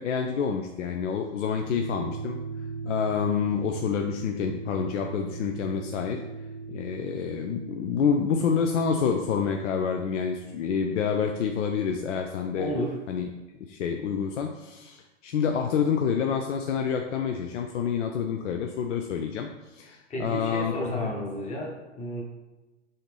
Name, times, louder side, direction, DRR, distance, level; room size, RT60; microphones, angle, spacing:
voice 1, 0.0-2.4 2.8-6.2 6.7-12.7 13.1-13.3 13.5-21.1, left 7 dB, 70° left, 4 dB, 0.5 m, -28 dB
sound 1, 1.6-12.4, right 4 dB, 10° right, 0.3 m, -39 dB
voice 2, 12.6-13.0 20.1-22.2, equal, 20° left, -1 dB, 1.0 m, -32 dB
5.6 x 2.7 x 3.4 m, 1.1 s
hypercardioid pair, 120°, 38 cm